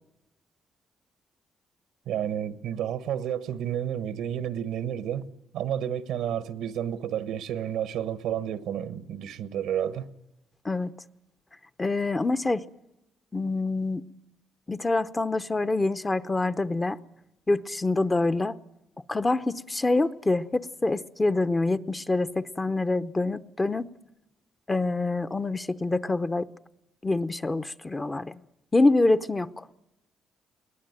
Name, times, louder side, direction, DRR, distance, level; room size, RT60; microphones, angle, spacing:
voice 1, 2.1-5.3 5.5-10.1, right 9 dB, 90° right, 1.2 m, -31 dB
voice 2, 11.8-12.6 13.3-14.0 14.7-17.0 17.5-18.6 19.1-23.9 24.7-26.5 27.0-28.4 28.7-29.7, left 2 dB, 20° left, 0.7 m, -26 dB
21.5 x 19.0 x 9.2 m
cardioid pair, 90°, 0 cm